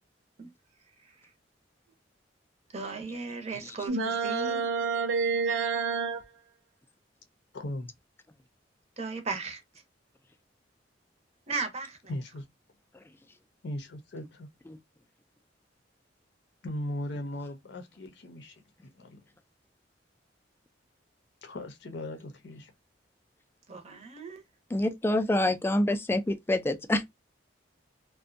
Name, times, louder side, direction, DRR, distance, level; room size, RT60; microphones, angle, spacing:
voice 1, 1.0-1.3 2.7-4.7 9.0-9.6 11.5-12.1 23.7-24.4, right 4 dB, 35° right, 0.7 m, -36 dB
sound 1, 3.9-6.2, right 5 dB, 80° right, 0.4 m, -28 dB
voice 2, 7.5-7.9 12.1-12.5 13.6-14.5 16.6-19.2 21.4-22.7, left 1 dB, 65° left, 0.6 m, -38 dB
voice 3, 24.7-27.0, left 1 dB, 10° left, 0.3 m, -26 dB
2.6 x 2.2 x 2.4 m
head